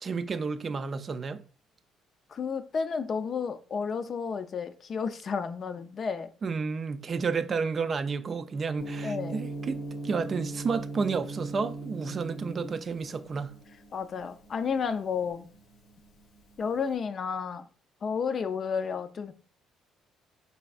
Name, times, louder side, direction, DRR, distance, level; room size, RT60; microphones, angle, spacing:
voice 1, 0.0-1.4 6.4-13.6, right 5 dB, 40° right, 0.3 m, -31 dB
voice 2, 2.3-6.3 9.0-9.4 12.1-12.2 13.9-15.5 16.6-17.7 18.0-19.3, left 6 dB, 45° left, 0.4 m, -32 dB
Gong, 8.8-16.8, right 2 dB, 80° left, 0.8 m, -40 dB
4.1 x 3.4 x 2.3 m
cardioid pair, 95°, 0 cm